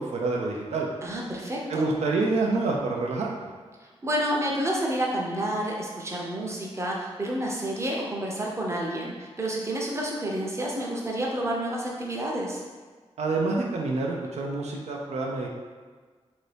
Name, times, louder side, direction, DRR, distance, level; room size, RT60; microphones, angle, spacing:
voice 1, 0.0-0.9 1.7-3.3 13.2-15.5, right 3 dB, 90° right, -1 dB, 0.4 m, -27 dB
voice 2, 1.0-1.9 4.0-12.6, right 1 dB, 25° right, -2 dB, 0.6 m, -29 dB
2.7 x 2.6 x 3.3 m, 1.5 s
wide cardioid pair, 80°, 11 cm